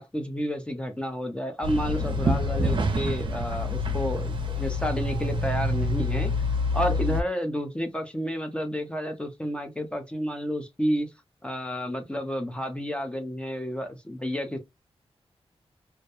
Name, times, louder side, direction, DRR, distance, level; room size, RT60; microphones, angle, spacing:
voice 1, 0.0-6.3 6.7-11.1 11.4-14.6, equal, 10° left, 0.4 m, -30 dB
sound 1, 1.6-7.2, left 1 dB, 50° right, 0.5 m, -27 dB
2.2 x 2.1 x 2.8 m
wide cardioid pair, 130°, 11 cm